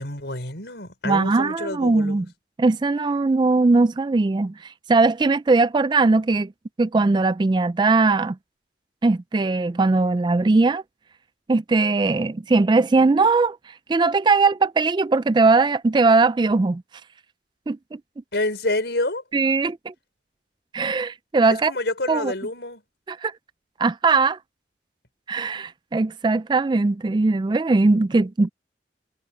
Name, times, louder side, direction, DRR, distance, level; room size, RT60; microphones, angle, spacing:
voice 1, 0.0-2.3 18.3-19.2 21.5-22.8, left 2 dB, 70° left, 5.1 m, -28 dB
voice 2, 1.0-2.3 2.6-4.5 4.9-6.5 6.8-8.4 9.0-10.8 11.5-13.6 13.9-16.8 17.7-18.0 19.3-19.9 20.7-21.7 22.1-22.3 23.1-23.3 23.8-24.4 25.3-28.5, right 3 dB, 25° right, 0.3 m, -20 dB
head